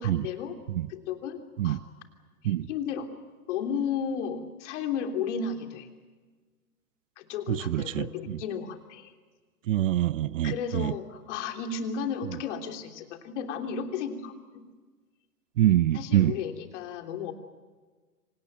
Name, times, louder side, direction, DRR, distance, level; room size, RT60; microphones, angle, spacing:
voice 1, 0.0-0.6 0.9-1.8 2.4-3.1 3.5-5.9 7.2-9.1 10.4-14.6 15.9-17.3, left 6 dB, 50° left, 3.3 m, -34 dB
voice 2, 7.5-8.4 9.7-10.9 15.6-16.3, right 13 dB, 55° right, 0.7 m, -25 dB
26.0 x 18.0 x 9.2 m
hypercardioid pair, 125°, 47 cm